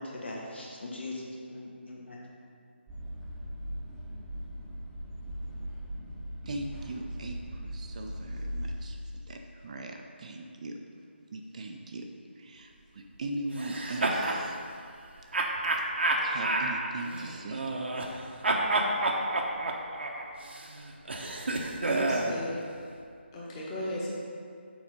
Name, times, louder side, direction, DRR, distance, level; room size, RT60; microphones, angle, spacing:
voice 1, 0.0-2.3, left 2 dB, 65° left, -3 dB, 1.8 m, -40 dB
sound 1, 2.9-8.8, equal, ahead, 1.0 m, -39 dB
voice 2, 6.4-9.0 9.3-10.8 11.3-12.1 12.4-14.6 15.8-15.9 16.2-17.8, right 2 dB, 35° right, 3 dB, 0.5 m, -39 dB
sound 2, 13.6-14.4 15.3-18.2 18.4-22.4, right 2 dB, 65° right, 1.0 m, -29 dB
voice 3, 21.8-22.5 23.3-24.1, equal, 20° left, -5 dB, 1.4 m, -36 dB
7.1 x 4.9 x 5.1 m, 2.4 s
figure-of-eight pair, 160°, 6 cm